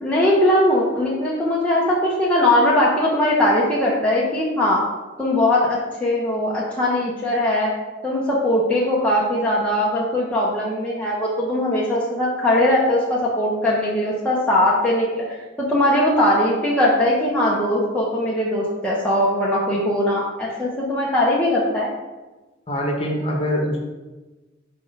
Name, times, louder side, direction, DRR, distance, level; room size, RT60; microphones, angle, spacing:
voice 1, 0.0-4.8 5.2-7.7 8.0-21.9, left 1 dB, 5° left, -6 dB, 0.8 m, -20 dB
voice 2, 22.7-23.8, equal, 30° left, -1 dB, 1.1 m, -23 dB
5.0 x 3.6 x 5.3 m, 1.2 s
head